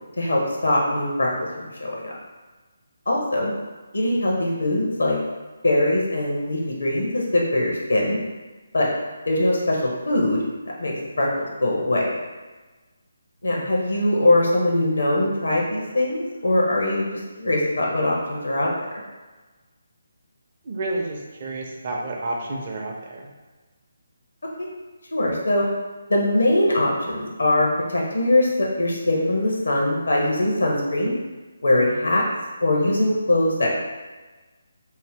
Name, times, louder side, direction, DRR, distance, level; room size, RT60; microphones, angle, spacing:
voice 1, 0.2-1.5 1.8-2.1 3.1-3.5 3.9-5.2 5.6-8.2 8.7-8.9 9.3-10.4 10.8-12.1 13.4-17.0 17.4-18.7 24.6-24.7 25.1-25.7 26.1-31.1 31.6-32.2 32.6-33.8, left 1 dB, 80° left, -2 dB, 0.7 m, -22 dB
voice 2, 20.6-23.3, right 2 dB, 45° right, -1 dB, 0.5 m, -30 dB
2.7 x 2.1 x 3.4 m, 1.2 s
figure-of-eight pair, 150°, 0 cm